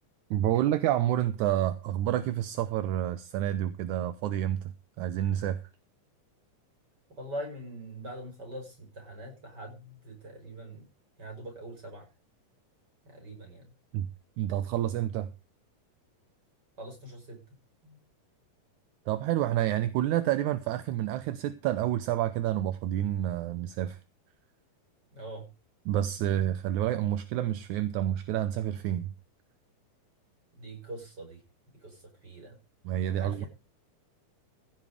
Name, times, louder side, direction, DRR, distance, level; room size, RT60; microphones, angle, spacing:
voice 1, 0.3-4.6 5.0-5.6 13.9-14.1 14.4-15.3 19.1-24.0 25.9-29.1 32.9-33.5, right 12 dB, 75° right, 2.1 m, -29 dB
voice 2, 7.1-10.8 11.2-12.1 13.0-13.7 16.8-17.4 17.8-18.0 25.1-25.4 30.5-31.4 31.8-32.6 33.2-33.5, right 1 dB, 30° right, 6.0 m, -43 dB
16.0 x 7.7 x 4.9 m
omnidirectional pair, 3.8 m